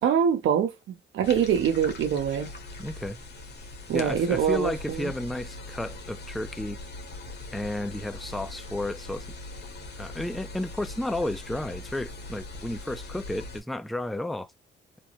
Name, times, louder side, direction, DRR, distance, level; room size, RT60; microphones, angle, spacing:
voice 1, 0.0-2.5 3.9-5.1, right 8 dB, 75° right, 0.9 m, -24 dB
sound 1, 1.2-13.6, left 2 dB, 55° left, 1.1 m, -41 dB
voice 2, 2.8-3.2 3.9-6.8 7.5-9.3 10.0-14.5, left 1 dB, ahead, 0.4 m, -32 dB
3.4 x 2.0 x 2.8 m
cardioid pair, 90°, 20 cm